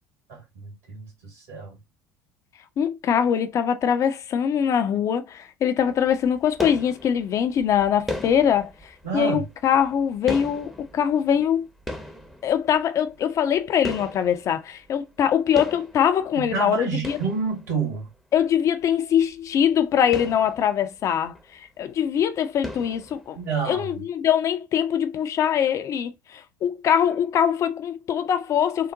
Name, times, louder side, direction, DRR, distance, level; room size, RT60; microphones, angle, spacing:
voice 1, 0.3-1.8 9.0-9.4 16.4-18.1 23.3-24.0, right 5 dB, 65° right, 2.0 m, -29 dB
voice 2, 2.8-11.7 12.4-17.2 18.3-23.4 23.7-28.9, left 8 dB, 35° left, 0.4 m, -23 dB
sound 1, 5.8-15.3 15.6-18.1 18.5-18.6 18.9-19.0 19.2-19.4 19.9-21.7 21.9-22.2 22.6-23.6, left 1 dB, ahead, 0.6 m, -38 dB
3.7 x 2.1 x 2.6 m
figure-of-eight pair, 65°, 9 cm